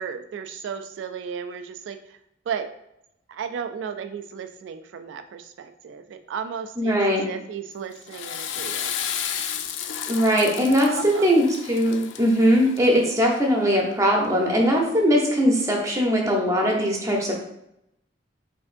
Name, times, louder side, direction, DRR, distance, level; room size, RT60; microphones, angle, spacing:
voice 1, 0.0-2.0 2.5-2.7 3.3-8.9 10.4-10.5 10.9-11.3, right 7 dB, 85° right, 8 dB, 0.3 m, -34 dB
voice 2, 6.8-7.2 10.1-17.4, equal, 15° right, 0 dB, 0.8 m, -20 dB
Water / Toilet flush, 7.9-13.1, left 8 dB, 90° left, 0.4 m, -32 dB
5.0 x 3.5 x 2.5 m, 0.81 s
head